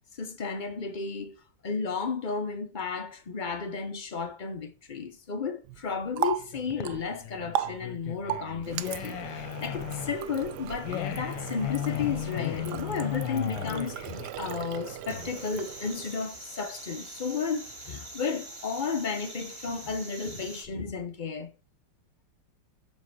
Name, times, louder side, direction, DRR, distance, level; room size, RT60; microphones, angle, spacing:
voice 1, 0.1-21.5, left 5 dB, 45° left, 0.6 m, -33 dB
Water tap faucet, 5.6-16.4, right 11 dB, 70° right, 1.1 m, -37 dB
sound 1, 6.5-15.6, left 14 dB, 75° left, 1.4 m, -36 dB
sound 2, 15.1-20.7, right 2 dB, 15° right, 2.1 m, -44 dB
7.4 x 5.4 x 6.0 m
omnidirectional pair, 2.0 m